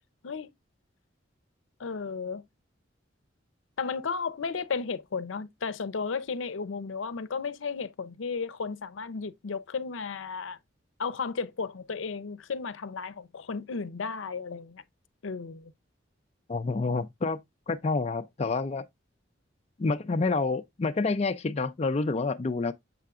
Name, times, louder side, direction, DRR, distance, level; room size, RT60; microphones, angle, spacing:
voice 1, 1.8-2.4 3.8-10.6 11.0-14.8 15.2-15.7, left 5 dB, 90° left, 0.6 m, -34 dB
voice 2, 16.5-17.4 17.7-18.8 19.8-22.7, left 3 dB, 35° left, 0.4 m, -28 dB
7.4 x 5.7 x 2.4 m
head